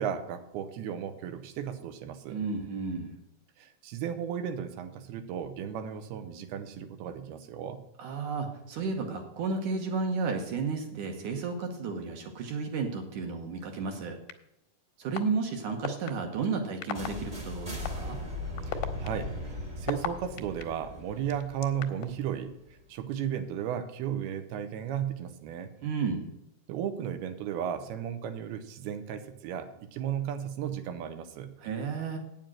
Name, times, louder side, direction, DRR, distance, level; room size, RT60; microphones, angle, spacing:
voice 1, 0.0-2.4 3.6-7.8 18.7-19.3 19.8-22.5 22.9-25.7 26.7-31.5, right 9 dB, 85° right, 9 dB, 2.8 m, -35 dB
voice 2, 2.3-3.1 8.0-14.2 15.0-18.2 25.8-26.2 31.6-32.2, right 4 dB, 65° right, 4 dB, 2.1 m, -32 dB
sound 1, 14.3-14.4 15.2-15.3 15.8-16.1 16.8-17.1 17.8-17.9 18.6-20.6 21.3-22.1, left 11 dB, 80° left, 2.7 m, -33 dB
sound 2, 16.9-22.8, left 1 dB, 25° right, 1.0 m, -39 dB
8.9 x 7.5 x 6.2 m, 0.85 s
omnidirectional pair, 4.5 m